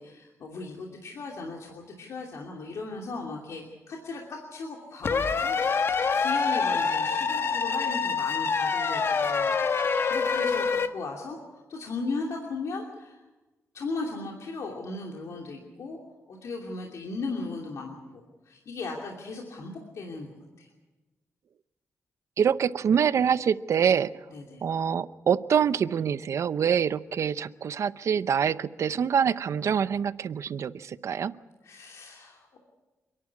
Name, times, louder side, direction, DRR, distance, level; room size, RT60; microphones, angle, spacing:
voice 1, 0.0-13.2 13.7-16.0 16.3-20.3 20.6-20.7 24.3-24.6 31.6-32.6, left 3 dB, 70° left, 0 dB, 2.8 m, -37 dB
sound 1, 5.0-10.9, left 5 dB, 50° left, 1.2 m, -26 dB
voice 2, 22.4-24.1 24.6-31.3, right 7 dB, 65° right, 15 dB, 0.7 m, -25 dB
28.0 x 11.0 x 9.7 m, 1.1 s
wide cardioid pair, 125°, 6 cm